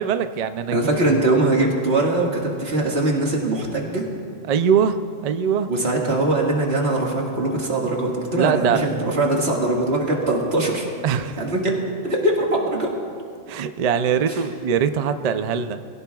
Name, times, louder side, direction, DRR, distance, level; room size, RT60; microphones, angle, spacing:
voice 1, 0.0-0.9 4.5-5.0 5.2-5.7 8.3-8.8 11.0-11.4 13.5-15.8, right 7 dB, 85° right, 9 dB, 0.3 m, -22 dB
voice 2, 0.7-4.0 5.6-10.9 11.4-11.7 12.0-12.9 14.3-14.4, right 2 dB, 50° right, -2 dB, 2.1 m, -21 dB
22.5 x 16.0 x 2.3 m, 2.3 s
omnidirectional pair, 1.4 m